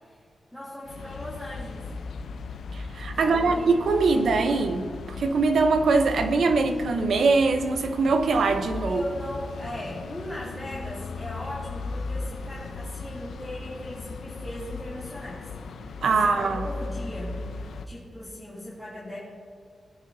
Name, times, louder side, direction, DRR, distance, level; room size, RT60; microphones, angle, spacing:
voice 1, 0.5-1.9 3.1-3.7 8.8-15.4 15.8-17.4 17.8-19.2, left 1 dB, ahead, -9 dB, 2.7 m, -38 dB
sound 1, 0.8-17.9, left 4 dB, 80° left, 0.7 m, -37 dB
voice 2, 2.7-4.9 5.2-9.0 16.0-16.7, right 3 dB, 70° right, 6 dB, 0.8 m, -22 dB
19.0 x 9.5 x 2.8 m, 2.1 s
wide cardioid pair, 105°, 0 cm